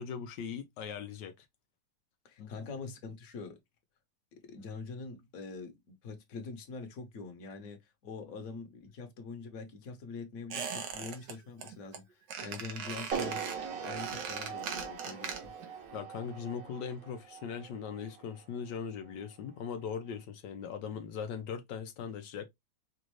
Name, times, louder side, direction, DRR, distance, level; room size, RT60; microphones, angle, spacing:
voice 1, 0.0-1.5 2.4-2.7 4.6-4.7 13.8-13.9 15.9-22.5, left 7 dB, 90° left, 1.3 m, -40 dB
voice 2, 2.2-3.6 4.3-13.4 13.7-15.5, left 4 dB, 60° left, 1.4 m, -44 dB
Squeak, 10.5-11.3 11.6-12.0 12.3-15.7 16.0-16.1, right 6 dB, 85° right, 1.6 m, -40 dB
sound 1, 13.1-19.3, right 6 dB, 60° right, 1.3 m, -41 dB
5.2 x 2.5 x 3.1 m
omnidirectional pair, 1.8 m